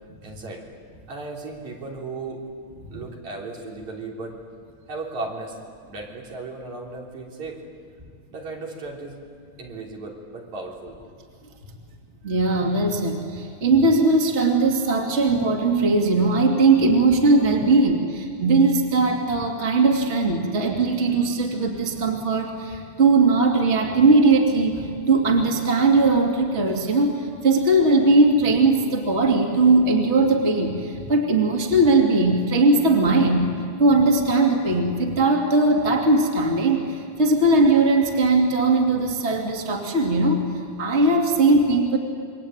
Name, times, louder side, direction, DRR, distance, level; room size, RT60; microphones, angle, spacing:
voice 1, 0.2-0.6 1.1-2.4 2.9-4.4 4.9-5.6 5.9-7.6 8.3-9.2 9.6-11.0 17.6-17.7, right 3 dB, 70° right, -1 dB, 4.9 m, -35 dB
voice 2, 12.2-33.5 33.8-36.8 37.2-40.4 40.8-42.0, right 2 dB, 20° right, 1 dB, 2.8 m, -19 dB
28.0 x 23.5 x 9.0 m, 2.2 s
omnidirectional pair, 3.5 m